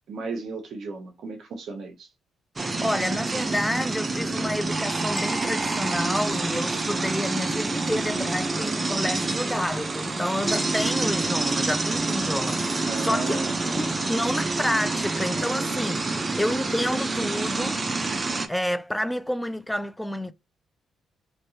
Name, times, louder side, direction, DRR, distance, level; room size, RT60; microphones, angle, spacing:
voice 1, 0.1-2.1 12.9-14.0, right 3 dB, 65° right, 0.7 m, -35 dB
sound 1, 2.6-18.5, right 3 dB, 25° right, 0.6 m, -27 dB
voice 2, 2.8-13.4 13.7-20.3, left 1 dB, 5° left, 0.3 m, -29 dB
sound 2, 5.2-7.2, left 2 dB, 30° left, 1.4 m, -42 dB
3.2 x 2.7 x 2.7 m
cardioid pair, 90°, 0 cm